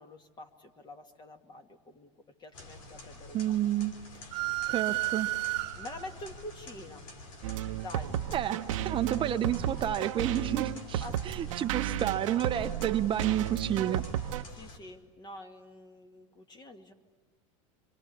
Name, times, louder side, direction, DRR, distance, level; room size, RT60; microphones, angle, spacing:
voice 1, 0.0-2.1 2.4-3.6 4.1-5.4 5.7-7.0 7.8-8.1 10.9-11.5 14.5-16.9, left 1 dB, 25° left, 6 dB, 2.3 m, -47 dB
sound 1, 2.5-14.8, left 2 dB, 90° left, 3.5 m, -49 dB
voice 2, 3.3-3.9 4.7-5.3 8.3-8.6 8.8-14.0, right 11 dB, 30° right, 8 dB, 0.9 m, -30 dB
sound 2, 4.3-6.1, right 20 dB, 60° right, 1.2 m, -32 dB
sound 3, 7.4-14.4, right 11 dB, 80° right, 1.0 m, -33 dB
27.0 x 26.0 x 8.5 m, 1.3 s
supercardioid pair, 125°, 17 cm